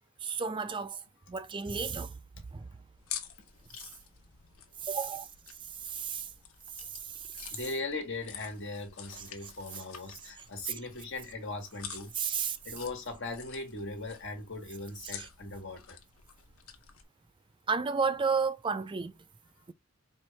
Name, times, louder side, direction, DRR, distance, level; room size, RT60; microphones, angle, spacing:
voice 1, 0.2-1.0 1.3-2.2 2.5-2.7 4.8-5.3 5.8-6.3 7.0-7.5 10.7-10.8 12.1-12.6 15.2-15.3 17.7-19.1, right 5 dB, 25° right, 0.4 m, -32 dB
sound 1, 3.0-17.1, left 8 dB, 85° left, 0.8 m, -48 dB
voice 2, 7.5-12.1 12.6-16.0, left 2 dB, 65° left, 1.5 m, -39 dB
4.5 x 2.6 x 3.2 m
head